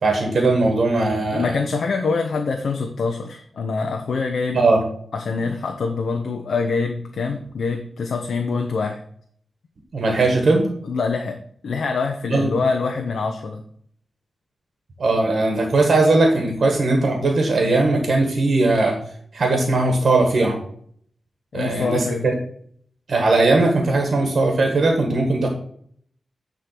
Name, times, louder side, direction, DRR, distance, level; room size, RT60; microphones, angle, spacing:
voice 1, 0.0-1.6 4.5-4.8 9.9-10.7 12.3-12.5 15.0-19.0 19.3-20.6 21.5-22.3 23.1-25.5, right 2 dB, 60° right, 2 dB, 1.7 m, -19 dB
voice 2, 1.3-4.7 5.1-9.0 10.8-11.4 11.6-13.6 21.5-22.3, left 4 dB, 75° left, 4 dB, 0.8 m, -25 dB
9.8 x 3.8 x 5.9 m, 0.62 s
wide cardioid pair, 130°, 0 cm